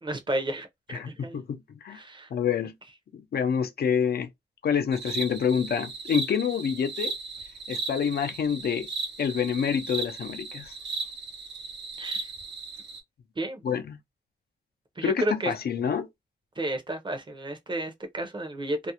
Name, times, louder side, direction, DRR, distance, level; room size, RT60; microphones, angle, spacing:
voice 1, 0.0-1.4 1.9-2.3 12.0-12.3 13.4-13.6 15.0-15.5 16.6-18.9, right 1 dB, 25° right, 0.6 m, -32 dB
voice 2, 0.9-2.0 2.3-2.7 3.1-4.3 4.6-7.1 7.7-8.9 9.2-10.7 13.6-14.0 15.0-16.1, left 7 dB, 60° left, 0.4 m, -27 dB
sound 1, 4.9-13.0, right 4 dB, 85° right, 0.7 m, -36 dB
2.4 x 2.0 x 2.8 m
wide cardioid pair, 115°, 18 cm